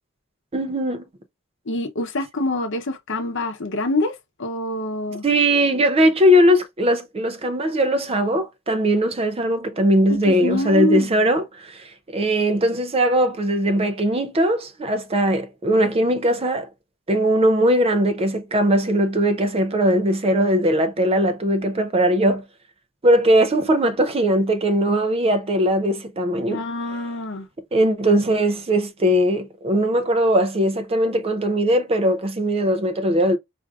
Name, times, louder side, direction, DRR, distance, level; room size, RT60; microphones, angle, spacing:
voice 1, 0.5-1.0 5.2-16.7 17.1-22.4 23.0-26.6 27.7-33.4, equal, 30° right, 0.5 m, -20 dB
voice 2, 1.7-5.2 10.3-11.1 26.5-27.5, left 2 dB, 65° left, 0.8 m, -25 dB
4.7 x 2.5 x 2.3 m
head